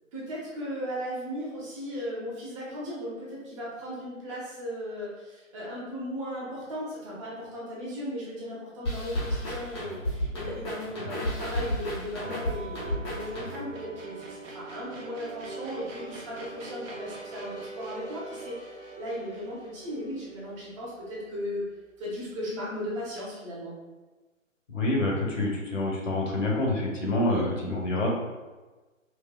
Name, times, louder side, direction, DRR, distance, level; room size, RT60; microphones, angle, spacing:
voice 1, 0.1-21.6 22.0-23.7 27.3-27.5, equal, 25° right, -5 dB, 0.8 m, -36 dB
sound 1, 8.9-13.8, left 1 dB, 20° left, 0.6 m, -32 dB
sound 2, 12.2-21.4, right 3 dB, 70° right, 0.8 m, -43 dB
voice 2, 24.7-28.1, left 2 dB, 65° left, -2 dB, 1.2 m, -27 dB
4.6 x 2.3 x 2.2 m, 1.2 s
figure-of-eight pair, 135°, 41 cm